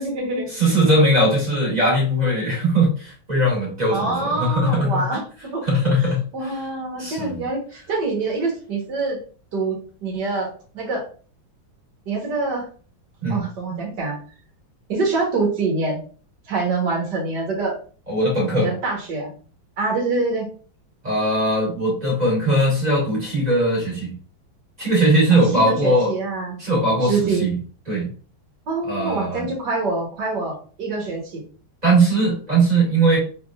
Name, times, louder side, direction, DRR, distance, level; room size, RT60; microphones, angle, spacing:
voice 1, 0.0-0.5 3.9-5.2 5.5-5.6 6.0-6.1 6.3-9.2 9.5-9.8 10.0-11.0 12.1-12.6 13.3-14.2 14.9-16.0 16.5-17.7 18.5-19.3 19.8-20.5 25.3-26.6 27.0-27.5 28.7-31.4, right 3 dB, 60° right, -1 dB, 1.8 m, -25 dB
voice 2, 0.5-5.0 5.6-6.2 7.0-7.4 13.2-13.4 18.1-18.7 21.0-24.1 24.8-26.1 26.6-27.6 27.9-28.1 28.9-29.4 31.8-33.2, right 1 dB, 20° right, -6 dB, 1.9 m, -19 dB
4.0 x 3.5 x 2.4 m, 0.40 s
omnidirectional pair, 2.2 m